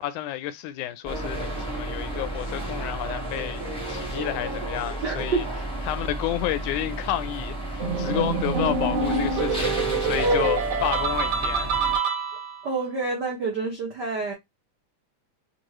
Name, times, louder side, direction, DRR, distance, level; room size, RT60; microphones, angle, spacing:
voice 1, 0.0-5.5 5.8-11.8, left 13 dB, 85° left, 2.0 m, -31 dB
sound 1, 1.0-12.0, right 1 dB, 5° left, 0.4 m, -32 dB
voice 2, 5.0-5.4 8.1-8.2 10.2-10.6 12.6-14.3, right 3 dB, 90° right, 0.9 m, -27 dB
sound 2, 7.8-12.7, right 4 dB, 55° right, 2.3 m, -26 dB
5.3 x 2.3 x 3.0 m
omnidirectional pair, 3.5 m